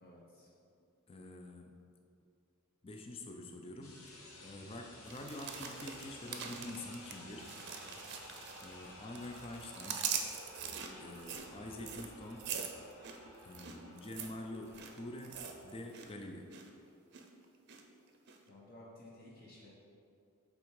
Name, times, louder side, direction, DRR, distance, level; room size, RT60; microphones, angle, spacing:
voice 1, 0.0-0.5 18.5-19.7, left 1 dB, 45° left, -5 dB, 1.0 m, -55 dB
voice 2, 1.1-1.8 2.8-4.1 4.4-7.5 8.6-10.1 11.0-12.5 13.4-16.5, left 1 dB, 25° left, 3 dB, 0.5 m, -47 dB
sound 1, 3.8-15.8, left 1 dB, 75° left, 1.3 m, -54 dB
sound 2, 5.1-8.9 9.1-16.1 16.3-16.7 17.1-17.8 18.3-18.4, right 7 dB, 50° right, 0.6 m, -43 dB
8.6 x 3.5 x 4.7 m, 2.5 s
head